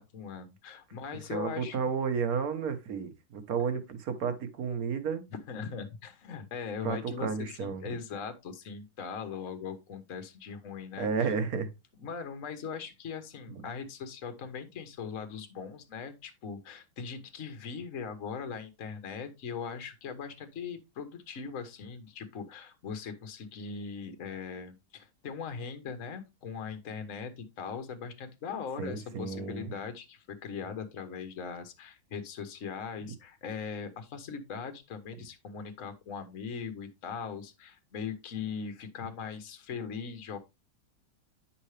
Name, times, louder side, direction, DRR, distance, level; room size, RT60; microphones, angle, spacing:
voice 1, 0.0-1.9 5.5-11.1 12.0-40.4, left 6 dB, 45° left, 1.4 m, -40 dB
voice 2, 1.1-5.2 6.8-7.9 11.0-11.7 13.5-13.6 28.8-29.7, right 6 dB, 55° right, 1.5 m, -32 dB
9.6 x 5.7 x 3.3 m
omnidirectional pair, 2.1 m